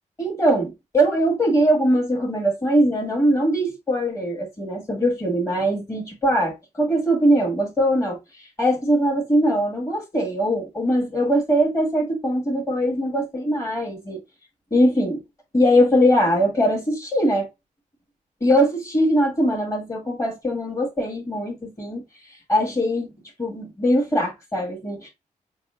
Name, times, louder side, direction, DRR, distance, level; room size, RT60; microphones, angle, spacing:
voice 1, 0.2-8.2 8.6-14.2 14.7-15.2 15.5-17.5 18.4-22.0 22.5-23.1 23.4-25.1, equal, 25° left, 2.1 m, -21 dB
6.9 x 2.5 x 2.3 m
wide cardioid pair, 145°, 14 cm